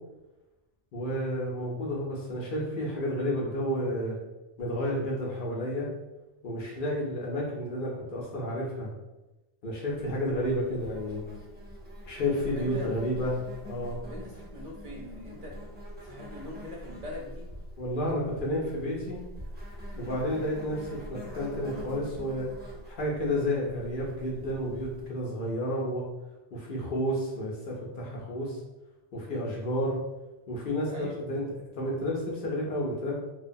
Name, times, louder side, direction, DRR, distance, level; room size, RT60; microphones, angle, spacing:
voice 1, 0.9-4.2 4.6-5.9 6.4-8.9 9.6-11.2 12.1-13.4 13.6-14.0 17.8-19.2 20.0-22.5 22.9-26.0 26.5-28.6 29.1-30.0 30.5-31.5 31.7-33.1, equal, 60° left, -4 dB, 0.6 m, -31 dB
Insect, 9.9-25.1, equal, 15° right, 0.4 m, -44 dB
voice 2, 12.4-12.9 14.0-15.5 16.0-17.5 19.9-20.1 28.0-28.2 30.8-31.3, left 1 dB, 60° right, -3 dB, 0.6 m, -42 dB
2.7 x 2.1 x 2.6 m, 1.0 s
omnidirectional pair, 1.2 m